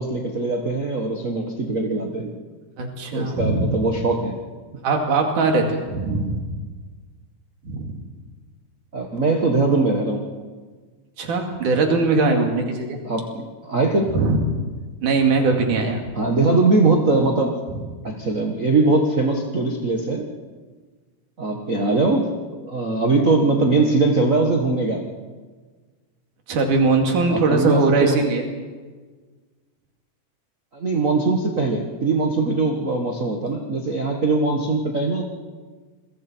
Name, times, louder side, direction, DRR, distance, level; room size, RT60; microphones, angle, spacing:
voice 1, 0.0-2.3 3.1-4.3 6.1-6.4 8.9-10.2 13.0-14.1 16.1-17.5 18.0-20.3 21.4-25.0 27.3-28.2 30.7-35.2, right 3 dB, 35° right, 1 dB, 1.3 m, -21 dB
voice 2, 2.8-3.7 4.8-6.4 7.6-7.9 11.2-13.0 14.1-14.4 15.0-16.0 17.7-17.8 26.5-28.4, right 3 dB, 80° right, 2 dB, 4.0 m, -20 dB
27.5 x 23.0 x 4.5 m, 1.4 s
omnidirectional pair, 3.5 m